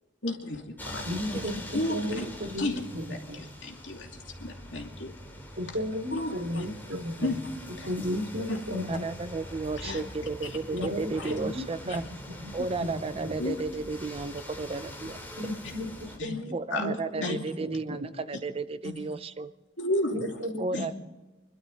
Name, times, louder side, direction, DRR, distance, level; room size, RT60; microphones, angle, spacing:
voice 1, 0.2-0.7 0.9-1.0 1.7-2.2 2.6-2.8 3.1-3.2 3.6-5.1 6.1-6.6 7.2-7.5 7.8-7.9 8.5-8.6 9.8-10.0 11.2-11.3 11.9-12.0 13.4-13.6 16.2-16.4 16.7-16.9 17.2-17.4 18.8-19.0 19.8-20.4 20.7-20.9, left 1 dB, 80° left, 1 dB, 2.6 m, -32 dB
sound 1, 0.8-16.2, equal, 10° left, 2.6 m, -43 dB
voice 2, 1.0-1.6 1.9-3.0 3.3-3.4 5.6-7.3 7.8-9.1 10.7-12.0 12.4-12.5 12.8-13.3 15.4-18.1 20.1-20.9, left 1 dB, 70° right, 2 dB, 2.4 m, -34 dB
voice 3, 8.9-12.0 12.5-15.2 16.5-19.5 20.6-20.9, right 3 dB, 30° right, 13 dB, 0.5 m, -33 dB
27.0 x 12.0 x 4.0 m, 1.2 s
head